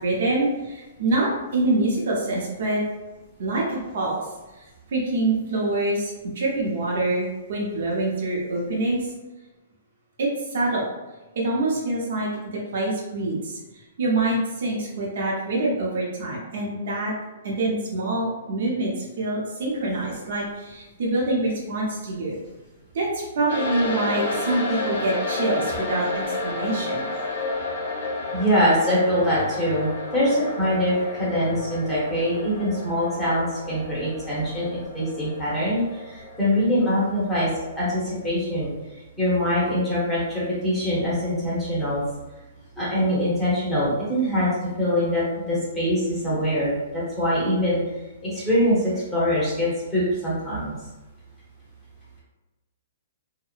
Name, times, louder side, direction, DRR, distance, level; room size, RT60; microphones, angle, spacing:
voice 1, 0.0-2.8 3.4-4.2 4.9-9.0 10.2-10.9 11.3-17.1 17.4-22.4 22.9-27.1, right 2 dB, 60° right, -4 dB, 0.7 m, -25 dB
sound 1, 23.5-38.1, left 3 dB, 65° left, 0.6 m, -32 dB
voice 2, 28.3-37.5 37.8-38.7 39.2-42.0 42.8-44.5 44.8-47.8 48.2-50.7, equal, 5° left, -10 dB, 1.0 m, -23 dB
2.8 x 2.0 x 2.4 m, 1.1 s
hypercardioid pair, 160°, 0 cm